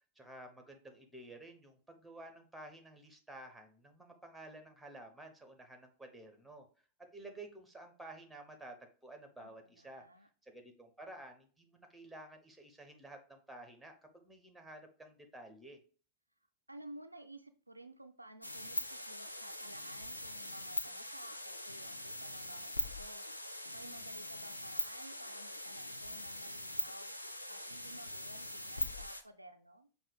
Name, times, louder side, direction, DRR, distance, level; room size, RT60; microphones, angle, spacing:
voice 1, 0.1-6.7 7.1-10.0 10.4-15.8, right 1 dB, ahead, 5 dB, 0.9 m, -52 dB
voice 2, 9.4-10.3 16.7-29.9, right 1 dB, 85° right, 8 dB, 0.3 m, -54 dB
sound 1, 18.4-29.2, left 1 dB, 85° left, 0.4 m, -42 dB
5.5 x 2.4 x 3.4 m, 0.39 s
figure-of-eight pair, 90°, 0 cm